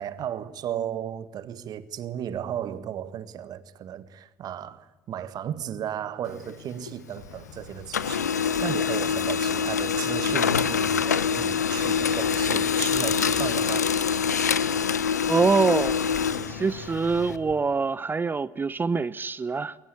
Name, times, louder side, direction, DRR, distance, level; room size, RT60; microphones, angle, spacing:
voice 1, 0.0-13.9, right 10 dB, 50° right, 1.7 m, -35 dB
Printer, 6.3-7.5 7.8-17.4, left 7 dB, 85° left, 0.9 m, -25 dB
sound 1, 7.2-17.6, left 5 dB, 60° left, 3.8 m, -46 dB
voice 2, 15.3-16.0 16.5-19.8, right 4 dB, 25° right, 0.8 m, -24 dB
22.0 x 19.5 x 8.5 m
figure-of-eight pair, 60°, 9 cm